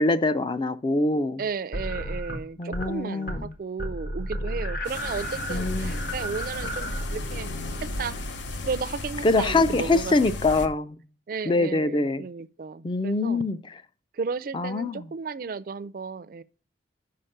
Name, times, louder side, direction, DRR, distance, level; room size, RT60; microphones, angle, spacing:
voice 1, 0.0-1.4 2.6-3.5 5.5-6.0 9.2-11.0 11.5-12.3 12.8-13.6 14.5-15.1, left 2 dB, 25° left, 0.4 m, -24 dB
voice 2, 1.4-7.5 8.0-8.2 8.7-10.7 11.3-13.4 14.1-16.4, right 5 dB, 50° right, 0.4 m, -34 dB
sound 1, 1.7-2.9 3.2-3.5 3.8-8.5, equal, 55° left, 1.1 m, -33 dB
sound 2, 4.8-10.7, left 2 dB, 85° left, 0.7 m, -35 dB
5.7 x 5.2 x 6.5 m
head